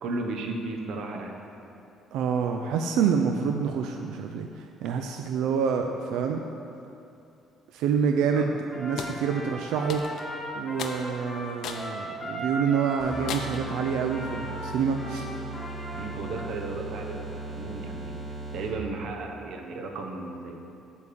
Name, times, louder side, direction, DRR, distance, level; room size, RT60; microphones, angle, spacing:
voice 1, 0.0-1.3 8.3-8.5 15.9-18.2 18.5-20.6, right 3 dB, 65° right, 2 dB, 0.9 m, -35 dB
voice 2, 2.1-6.4 7.7-10.0 10.6-15.3, right 6 dB, 90° right, 4 dB, 0.4 m, -27 dB
Trumpet, 8.7-16.5, equal, 5° left, 1.6 m, -38 dB
sound 1, 9.0-9.2 9.9-10.3 10.8-11.0 11.6-11.9 12.4-12.5 13.3-13.7, left 6 dB, 65° left, 0.5 m, -35 dB
sound 2, 13.0-18.9, right 2 dB, 25° right, 1.4 m, -38 dB
8.3 x 3.6 x 6.7 m, 2.7 s
cardioid pair, 130°, 0 cm